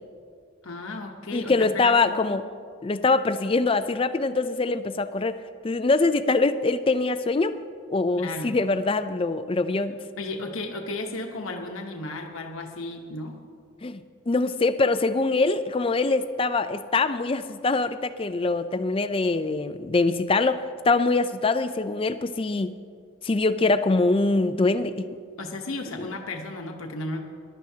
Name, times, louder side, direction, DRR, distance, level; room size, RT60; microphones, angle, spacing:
voice 1, 0.6-2.4 8.2-8.5 10.2-13.4 25.4-27.2, left 2 dB, 75° left, 2 dB, 1.1 m, -34 dB
voice 2, 1.3-2.5 2.8-5.4 5.6-7.6 7.9-10.0 13.8-14.0 14.3-22.7 23.2-25.1 26.0-26.1, left 3 dB, 25° left, 11 dB, 0.4 m, -23 dB
20.5 x 12.0 x 2.8 m, 2.2 s
head